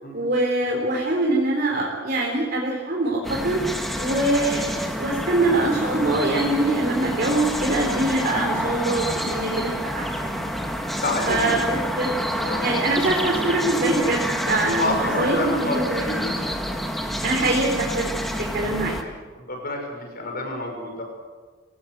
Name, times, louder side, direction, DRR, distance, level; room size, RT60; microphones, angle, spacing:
voice 1, 0.1-3.6 4.0-10.5 11.3-12.1 12.6-16.4 17.2-18.1 18.4-19.0, right 2 dB, 50° right, -2 dB, 3.9 m, -24 dB
sound 1, 3.2-19.0, equal, ahead, 2.1 m, -28 dB
voice 2, 10.9-11.6 12.4-12.6 14.7-16.2 19.4-21.0, left 1 dB, 50° left, 2 dB, 6.2 m, -28 dB
24.0 x 18.0 x 8.1 m, 1.4 s
head